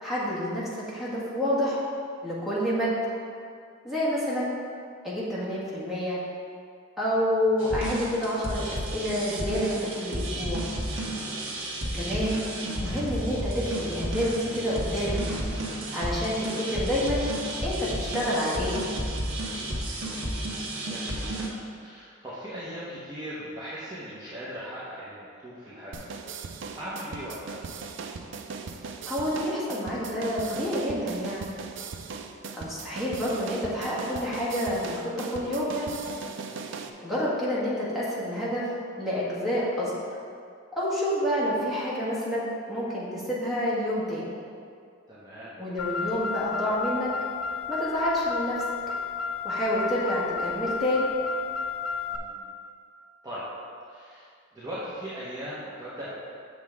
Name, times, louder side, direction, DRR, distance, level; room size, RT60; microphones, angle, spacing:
voice 1, 0.0-1.8 2.2-2.9 3.8-4.5 5.0-6.2 7.0-10.7 11.9-12.4 12.8-15.2 15.9-17.2 17.6-18.8 29.0-31.5 32.5-35.9 37.0-38.7 39.0-40.0 40.7-44.3 45.6-47.1 47.7-48.6 49.4-51.1, equal, ahead, -9 dB, 1.7 m, -28 dB
sound 1, 7.6-21.5, right 1 dB, 80° right, 1.3 m, -32 dB
voice 2, 11.2-11.5 20.9-26.0 26.8-27.7 36.5-36.9 45.1-45.6 52.1-52.5 53.2-53.4 53.8-54.3 54.5-56.1, equal, 20° right, -10 dB, 1.1 m, -39 dB
sound 2, 25.9-36.9, right 5 dB, 60° right, 0.4 m, -39 dB
Car, 45.8-52.2, left 6 dB, 85° left, 0.8 m, -32 dB
7.9 x 6.2 x 3.6 m, 2.3 s
head